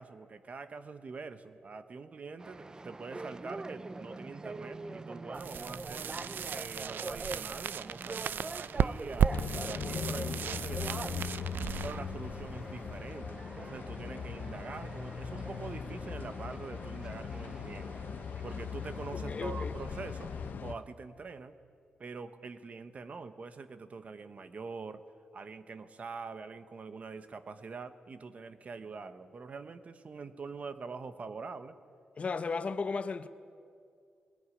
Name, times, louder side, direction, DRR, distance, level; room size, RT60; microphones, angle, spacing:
voice 1, 0.0-6.1 6.5-11.4 11.8-18.0 18.4-20.3 20.6-21.5 22.0-25.0 25.3-31.8, right 4 dB, 40° right, 1.2 m, -44 dB
sound 1, 2.4-20.5, right 2 dB, 20° right, 0.6 m, -45 dB
sound 2, 5.3-13.1, right 8 dB, 70° right, 0.5 m, -35 dB
sound 3, 9.3-20.7, left 6 dB, 65° left, 1.1 m, -40 dB
voice 2, 19.1-19.7 32.2-33.3, left 4 dB, 40° left, 0.8 m, -35 dB
21.5 x 19.5 x 9.9 m
wide cardioid pair, 145°, 3 cm